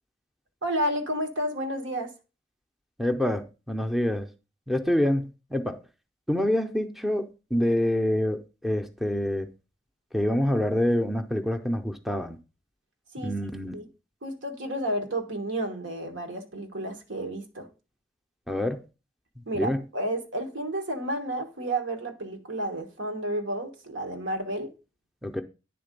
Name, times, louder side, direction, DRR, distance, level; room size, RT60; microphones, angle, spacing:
voice 1, 0.6-2.1 13.1-13.3 13.7-13.9 14.2-17.7 19.5-24.7, right 1 dB, 85° right, 1.3 m, -31 dB
voice 2, 3.0-4.3 4.7-5.8 6.3-9.5 10.1-12.4 13.2-13.7 18.5-18.8 19.4-19.8 25.2-25.4, left 1 dB, ahead, 0.5 m, -26 dB
9.6 x 3.7 x 5.1 m
head